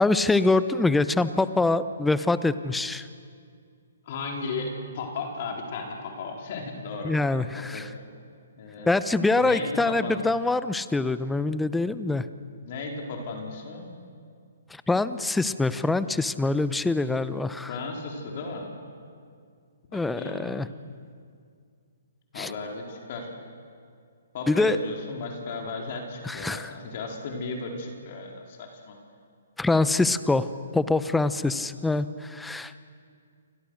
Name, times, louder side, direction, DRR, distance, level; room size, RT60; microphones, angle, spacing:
voice 1, 0.0-3.1 7.0-7.9 8.9-12.2 14.7-17.7 19.9-20.7 22.4-22.5 24.5-24.8 26.2-26.7 29.6-30.5 30.7-32.8, left 3 dB, 5° left, 14 dB, 0.9 m, -24 dB
voice 2, 4.1-7.2 7.7-8.0 8.6-8.9 9.3-10.2 12.6-13.9 17.7-18.7 19.9-20.4 22.3-23.3 24.3-29.0 31.4-31.6, left 3 dB, 45° left, 1 dB, 4.5 m, -35 dB
29.5 x 24.5 x 6.6 m, 2.2 s
figure-of-eight pair, 130°, 0 cm